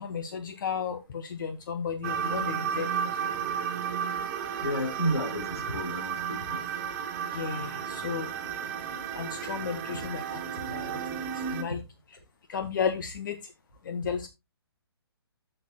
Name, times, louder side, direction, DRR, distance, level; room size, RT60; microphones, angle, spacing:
voice 1, 0.0-2.9 7.3-8.3 9.1-10.4 10.7-11.0 11.5-11.8 12.5-13.4 13.9-14.3, left 6 dB, 50° left, 0.9 m, -33 dB
sound 1, 2.0-11.6, right 7 dB, 30° right, 1.7 m, -33 dB
voice 2, 4.3-6.6, equal, 75° left, 4.4 m, -32 dB
13.0 x 6.7 x 2.2 m
figure-of-eight pair, 130°, 14 cm